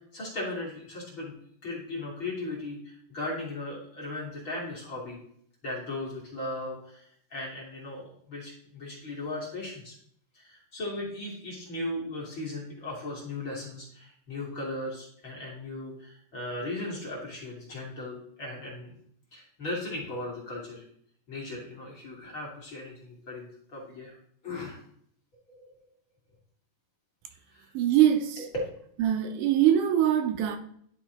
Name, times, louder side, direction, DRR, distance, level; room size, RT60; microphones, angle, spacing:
voice 1, 0.1-1.3 1.6-5.2 5.6-10.0 10.3-18.9 19.3-20.8 21.3-24.2 24.4-24.8 25.5-25.7 27.5-27.7, left 2 dB, 45° left, -4 dB, 2.0 m, -37 dB
voice 2, 27.7-28.5 29.0-30.6, right 11 dB, 80° right, 6 dB, 2.0 m, -23 dB
11.0 x 4.2 x 2.9 m, 0.65 s
omnidirectional pair, 3.7 m